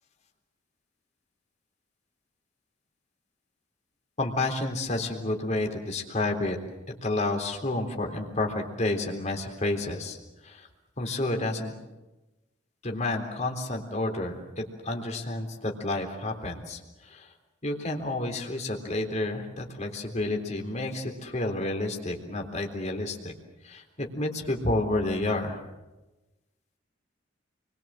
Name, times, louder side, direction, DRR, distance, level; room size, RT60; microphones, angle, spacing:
voice 1, 4.2-6.6 7.0-10.2 10.4-10.7 11.0-11.7 12.8-16.8 17.1-17.3 17.6-23.3 23.6-25.6, left 2 dB, 35° left, 2 dB, 3.6 m, -30 dB
29.0 x 22.5 x 7.6 m, 1.1 s
head